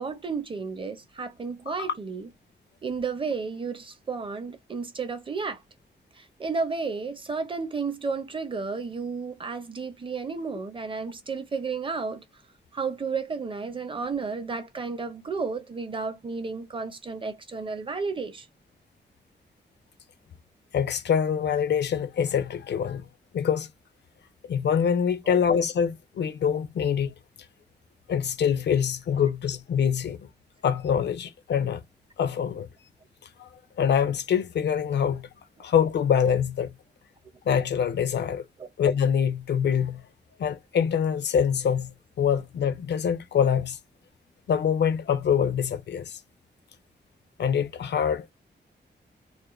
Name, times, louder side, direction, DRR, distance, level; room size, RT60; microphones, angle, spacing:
voice 1, 0.0-2.3 2.8-5.6 6.2-12.2 12.7-18.5 25.3-25.4 38.6-38.7, right 4 dB, 30° right, 0.6 m, -32 dB
voice 2, 20.7-23.1 23.3-23.7 24.5-27.1 28.1-30.2 30.6-31.8 32.2-32.7 33.4-33.5 33.8-35.3 35.6-36.7 37.5-38.4 38.8-40.0 40.4-41.9 42.2-43.8 44.5-46.2 47.4-48.3, left 8 dB, 75° left, 0.5 m, -25 dB
2.4 x 2.1 x 3.0 m
wide cardioid pair, 100°, 18 cm